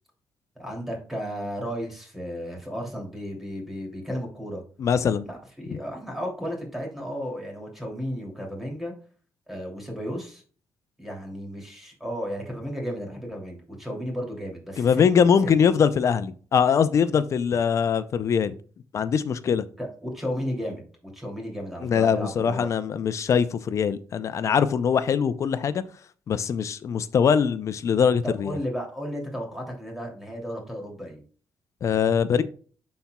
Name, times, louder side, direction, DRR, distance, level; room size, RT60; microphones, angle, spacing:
voice 1, 0.6-4.6 5.2-8.9 9.5-10.4 11.0-15.0 19.8-22.7 28.2-31.2, equal, 5° right, 0 dB, 2.8 m, -34 dB
voice 2, 4.8-5.2 5.7-5.8 14.8-18.5 18.9-19.6 21.8-25.8 26.3-28.5 31.8-32.4, left 7 dB, 55° left, 13 dB, 0.5 m, -22 dB
11.5 x 4.2 x 2.3 m, 0.42 s
cardioid pair, 105°, 6 cm